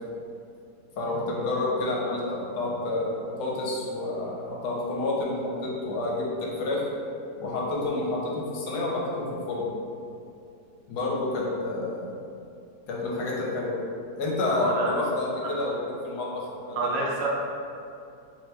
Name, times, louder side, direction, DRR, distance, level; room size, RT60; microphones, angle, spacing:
voice 1, 1.0-6.8 7.4-9.7 10.9-12.2 12.9-13.8 14.2-16.9, left 2 dB, 70° left, -3 dB, 1.2 m, -29 dB
voice 2, 14.4-14.9 15.4-15.5 16.8-17.3, right 3 dB, 65° right, -4 dB, 0.6 m, -28 dB
2.9 x 2.8 x 3.3 m, 2.5 s
omnidirectional pair, 1.8 m